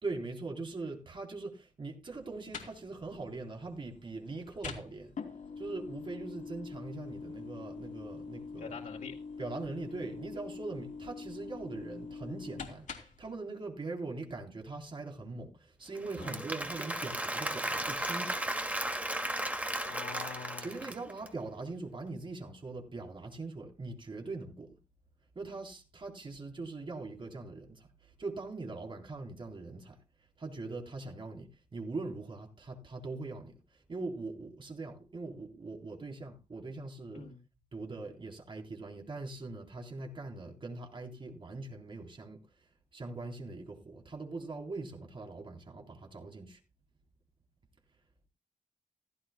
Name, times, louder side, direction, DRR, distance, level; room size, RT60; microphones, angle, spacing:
voice 1, 0.0-5.1 5.6-8.8 9.4-18.4 20.6-24.8 25.4-30.0 30.4-37.3 37.7-42.4 42.9-46.6, right 3 dB, 40° right, 3.8 m, -42 dB
sound 1, 2.1-13.3, left 5 dB, 70° left, 3.0 m, -45 dB
voice 2, 8.6-9.1 16.2-16.4 19.8-20.7 37.1-37.4, left 5 dB, 90° left, 2.4 m, -44 dB
Applause / Crowd, 15.9-21.3, right 1 dB, 10° right, 2.4 m, -35 dB
16.5 x 15.0 x 2.3 m
wide cardioid pair, 120°, 13 cm